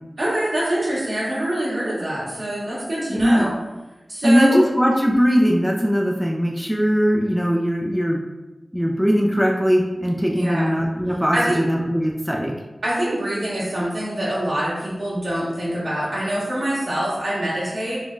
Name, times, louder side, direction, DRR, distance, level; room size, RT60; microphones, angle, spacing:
voice 1, 0.2-3.5 4.1-4.6 10.3-10.7 11.3-11.6 12.8-18.0, right 1 dB, 70° right, -9 dB, 1.5 m, -24 dB
voice 2, 3.1-3.5 4.2-8.2 8.7-12.5, equal, ahead, -1 dB, 0.3 m, -19 dB
3.6 x 2.1 x 2.5 m, 1.1 s
wide cardioid pair, 65°, 0 cm